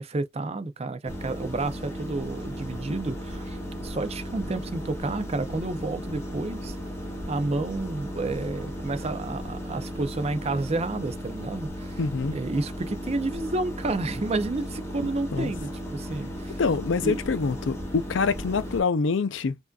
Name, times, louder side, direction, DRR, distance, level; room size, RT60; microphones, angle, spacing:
voice 1, 0.0-6.8 7.3-12.0 12.3-16.6 17.0-17.2, right 2 dB, 30° right, 0.5 m, -30 dB
sound 1, 1.0-18.8, equal, 15° left, 1.2 m, -36 dB
voice 2, 12.0-12.4 15.3-15.5 16.6-19.6, left 4 dB, 70° left, 0.5 m, -25 dB
4.7 x 2.6 x 2.3 m
head